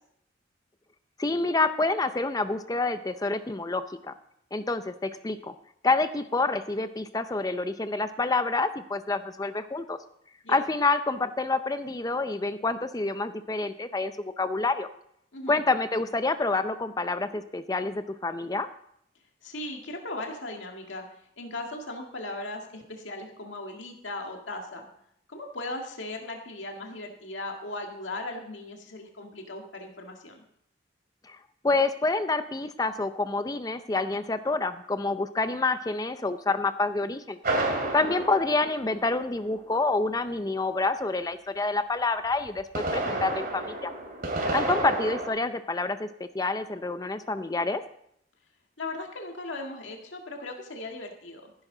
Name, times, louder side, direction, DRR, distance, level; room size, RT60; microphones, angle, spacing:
voice 1, 1.2-4.1 4.5-5.5 5.8-10.0 10.5-14.9 15.5-18.7 31.3-31.4 31.6-37.4 37.9-43.9 44.5-46.1 46.3-47.8, left 3 dB, 20° left, 11 dB, 0.5 m, -27 dB
voice 2, 19.4-21.1 21.4-24.9 25.3-30.4 38.0-38.2 44.4-44.6 48.8-51.5, left 2 dB, 85° left, 2 dB, 1.9 m, -38 dB
sound 1, 37.4-39.5 42.5-45.3, right 2 dB, 50° right, 2.7 m, -30 dB
15.0 x 11.0 x 3.9 m, 0.72 s
head